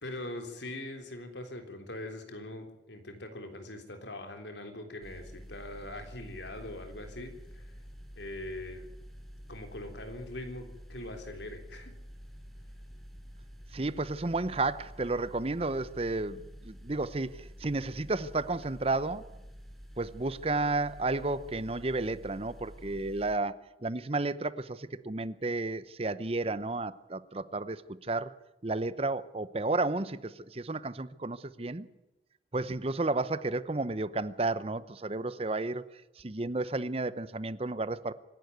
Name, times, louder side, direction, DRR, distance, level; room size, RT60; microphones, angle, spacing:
voice 1, 0.0-7.7 8.2-8.9 9.5-11.9, left 1 dB, 80° left, 3.7 m, -42 dB
sound 1, 5.0-23.3, equal, ahead, 2.6 m, -49 dB
voice 2, 13.7-19.3 20.0-23.5 23.8-28.3 28.6-31.9 32.5-35.9 36.2-38.1, right 2 dB, 35° right, 0.8 m, -32 dB
25.5 x 11.5 x 9.4 m
head